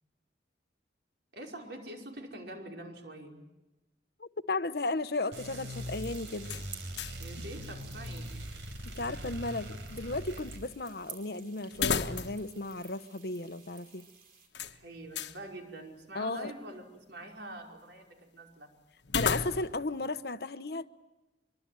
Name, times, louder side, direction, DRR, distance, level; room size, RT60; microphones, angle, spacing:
voice 1, 1.3-3.4 7.2-8.3 14.6-18.7, right 1 dB, 65° right, 5.2 m, -45 dB
voice 2, 4.2-6.5 8.8-14.1 16.1-16.5 19.1-20.9, left 2 dB, 55° left, 1.0 m, -35 dB
sound 1, 5.3-10.6, equal, 85° right, 4.4 m, -41 dB
sound 2, 5.7-14.5, right 6 dB, 50° right, 4.8 m, -53 dB
sound 3, 6.4-7.3 7.6-7.7 11.7-12.5 12.8-12.9 14.5-15.4 19.0-19.9, left 6 dB, 70° left, 1.3 m, -33 dB
25.0 x 23.5 x 9.3 m
head